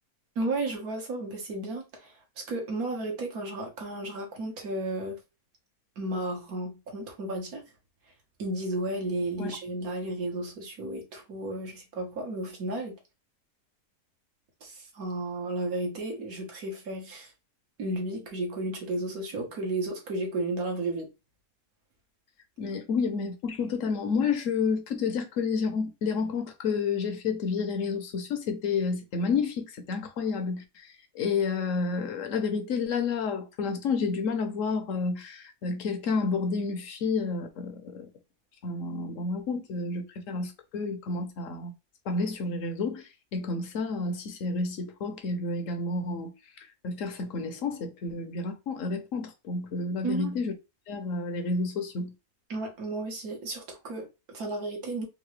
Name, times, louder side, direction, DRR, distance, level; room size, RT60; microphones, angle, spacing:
voice 1, 0.3-5.2 6.0-7.6 8.4-12.9 14.6-17.3 17.8-21.1 50.0-50.3 52.5-55.1, right 2 dB, 70° right, 1.5 m, -33 dB
voice 2, 22.6-38.1 38.6-41.7 42.1-46.3 46.8-50.5 50.9-52.1, left 4 dB, 60° left, 1.0 m, -30 dB
3.8 x 2.6 x 3.1 m
omnidirectional pair, 1.7 m